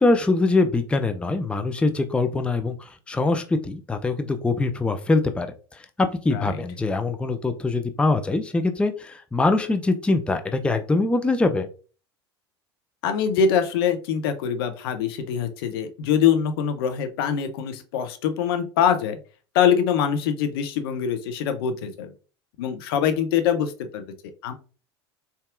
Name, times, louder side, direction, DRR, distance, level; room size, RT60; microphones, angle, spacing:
voice 1, 0.0-11.7, left 3 dB, 10° left, 8 dB, 0.4 m, -23 dB
voice 2, 6.3-6.6 13.0-19.2 19.5-22.1 22.6-24.0 24.4-24.5, left 8 dB, 60° left, 8 dB, 0.6 m, -23 dB
4.0 x 3.5 x 2.5 m, 0.37 s
figure-of-eight pair, 75°, 14 cm